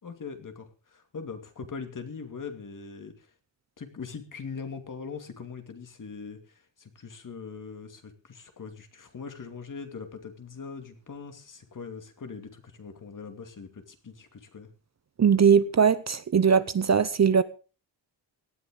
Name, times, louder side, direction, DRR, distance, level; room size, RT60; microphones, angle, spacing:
voice 1, 0.0-3.3 3.8-6.4 6.8-14.7, left 5 dB, 45° left, 6 dB, 2.5 m, -41 dB
voice 2, 15.2-17.4, right 7 dB, 40° right, 14 dB, 0.7 m, -20 dB
18.0 x 13.0 x 3.8 m, 0.36 s
wide cardioid pair, 140°, 44 cm